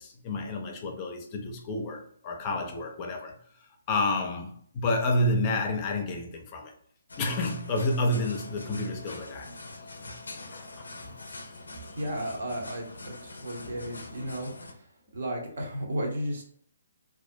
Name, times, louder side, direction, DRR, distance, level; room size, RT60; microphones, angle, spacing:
voice 1, 0.0-3.4 3.9-6.7 7.2-9.5 10.5-11.1 13.6-13.8, left 2 dB, 30° left, 0.5 m, -30 dB
sound 1, 7.1-14.7, left 2 dB, 85° left, 0.4 m, -44 dB
voice 2, 12.0-14.9 15.1-16.4, equal, 65° right, 0.8 m, -34 dB
2.4 x 2.0 x 2.5 m
hypercardioid pair, 145°, 0 cm